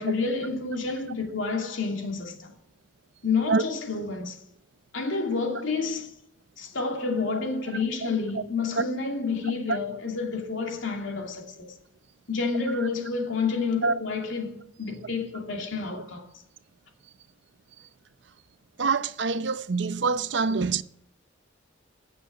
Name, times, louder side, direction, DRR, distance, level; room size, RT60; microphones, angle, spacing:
voice 1, 0.0-2.5 3.2-4.4 4.9-6.1 6.6-11.7 12.3-16.2, left 4 dB, 85° left, 2.7 m, -29 dB
voice 2, 18.8-20.8, right 4 dB, 65° right, 0.6 m, -25 dB
17.0 x 6.9 x 6.7 m
head